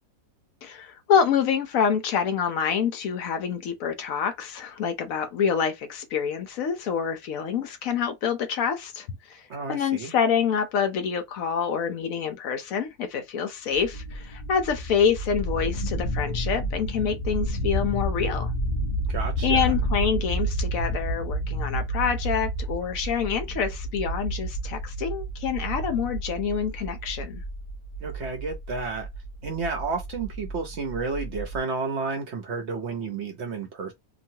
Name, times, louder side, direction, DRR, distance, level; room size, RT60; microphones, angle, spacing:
voice 1, 0.6-9.4 9.7-18.5 19.4-27.4, left 7 dB, 70° left, 1.0 m, -27 dB
voice 2, 9.5-10.1 19.1-19.7 28.0-29.1 29.4-33.9, right 4 dB, 55° right, 0.8 m, -31 dB
sound 1, 13.7-31.6, right 1 dB, 40° left, 0.7 m, -30 dB
3.0 x 2.3 x 2.7 m
omnidirectional pair, 1.6 m